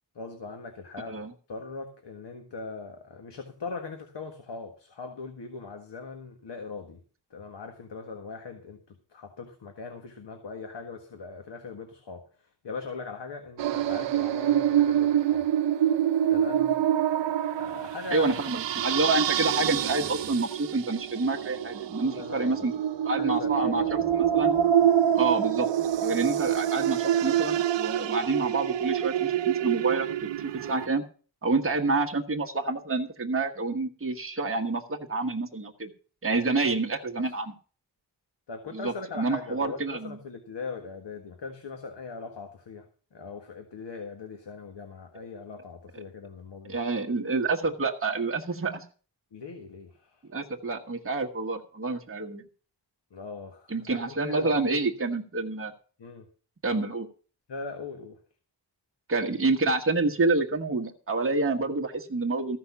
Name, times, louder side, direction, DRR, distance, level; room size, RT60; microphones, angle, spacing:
voice 1, 0.1-7.0 7.3-15.4 16.3-16.8 17.6-18.4 22.0-22.7 23.1-24.1 37.2-37.3 38.5-46.8 49.3-50.2 53.1-54.9 56.0-56.3 57.5-58.2, left 4 dB, 80° left, 5 dB, 1.7 m, -40 dB
Creepy Cavern, 13.6-30.9, right 10 dB, 90° right, 0.6 m, -26 dB
voice 2, 18.1-22.7 23.0-24.0 24.3-24.5 25.1-25.7 26.0-31.0 31.4-35.9 36.2-37.5 38.7-40.2 46.7-48.8 50.3-52.4 53.7-55.7 56.6-57.1 59.1-62.6, right 3 dB, 30° right, 1 dB, 1.4 m, -28 dB
14.5 x 6.2 x 7.1 m, 0.40 s
wide cardioid pair, 165°, 42 cm